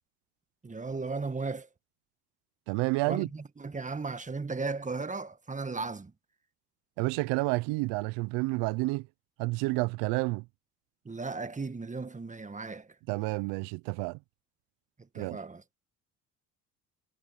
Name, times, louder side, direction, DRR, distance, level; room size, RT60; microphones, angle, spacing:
voice 1, 0.6-1.7 3.1-6.1 11.0-12.9 15.1-15.6, right 4 dB, 20° right, 1.6 m, -36 dB
voice 2, 2.7-3.3 7.0-9.1 9.4-10.4 13.1-14.2 15.2-15.4, right 24 dB, 75° right, 0.8 m, -30 dB
supercardioid pair, 75°, 41 cm